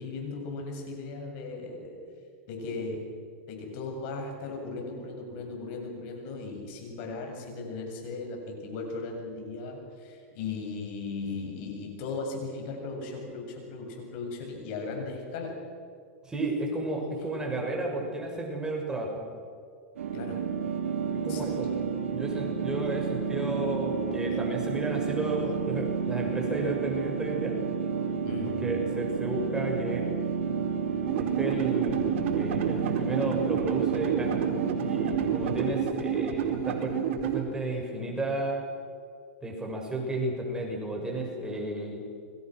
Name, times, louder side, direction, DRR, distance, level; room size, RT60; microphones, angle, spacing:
voice 1, 0.0-2.0 2.5-3.1 3.5-15.6 20.1-20.5 21.3-21.5 28.2-28.7, left 3 dB, 55° left, 2 dB, 7.7 m, -37 dB
voice 2, 16.2-19.2 21.2-21.7 22.1-27.6 28.5-30.1 31.1-34.5 34.8-38.7 39.4-42.0, right 2 dB, 10° right, 0 dB, 6.7 m, -32 dB
sound 1, 20.0-35.7, right 6 dB, 80° right, 3.8 m, -31 dB
sound 2, 31.1-37.4, right 9 dB, 65° right, 4.7 m, -30 dB
29.5 x 24.0 x 6.4 m, 2.2 s
hypercardioid pair, 120°, 7 cm